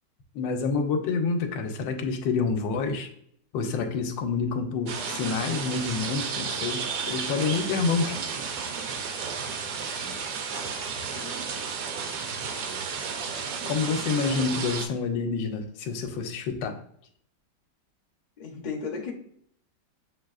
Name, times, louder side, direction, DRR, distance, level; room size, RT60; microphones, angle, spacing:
voice 1, 0.3-3.1 3.5-8.2 13.6-16.7, left 4 dB, 85° left, 5 dB, 1.3 m, -28 dB
sound 1, 4.9-14.9, right 5 dB, 70° right, 1.1 m, -33 dB
voice 2, 11.0-11.4 18.4-19.1, left 5 dB, 60° left, 0 dB, 0.4 m, -35 dB
7.5 x 2.6 x 2.4 m, 0.66 s
omnidirectional pair, 2.0 m